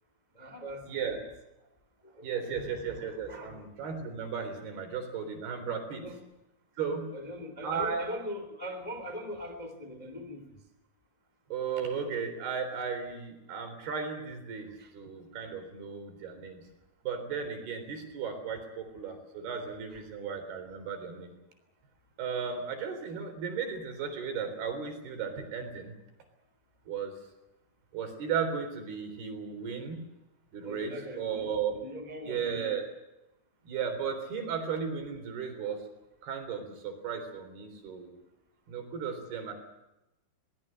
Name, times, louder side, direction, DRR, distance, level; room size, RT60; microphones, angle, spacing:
voice 1, 0.3-1.3 2.0-3.6 6.0-6.2 7.1-10.5 14.8-14.9 19.9-20.0 30.6-32.8 39.1-39.5, equal, 10° left, 6 dB, 2.0 m, -42 dB
voice 2, 0.9-1.2 2.2-6.1 6.8-7.1 7.6-8.1 11.5-16.6 17.0-21.4 22.2-26.0 26.9-27.2 27.9-30.0 30.5-31.8 32.2-32.9 33.7-35.8 36.2-38.1 38.7-39.5, right 6 dB, 60° right, 7 dB, 5.5 m, -35 dB
22.5 x 19.5 x 7.7 m, 0.92 s
omnidirectional pair, 5.4 m